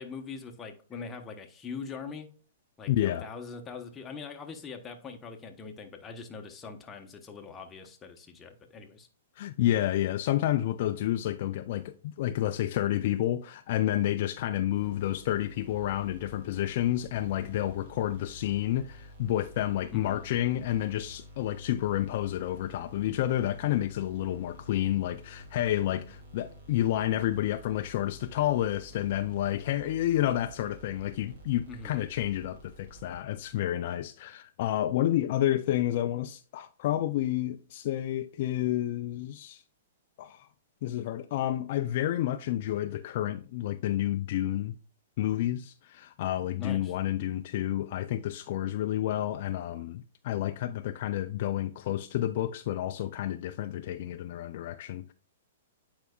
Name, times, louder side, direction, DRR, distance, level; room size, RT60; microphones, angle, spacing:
voice 1, 0.0-2.3 2.8-9.1 19.9-20.2 31.7-32.0 46.6-46.9, left 5 dB, 20° left, 1.0 m, -42 dB
voice 2, 2.9-3.3 9.4-39.6 40.2-40.5 40.8-44.7 45.2-55.1, left 13 dB, 55° left, 0.4 m, -30 dB
sound 1, 14.7-33.5, equal, 60° right, 2.6 m, -50 dB
8.9 x 4.7 x 2.3 m
hypercardioid pair, 130°, 0 cm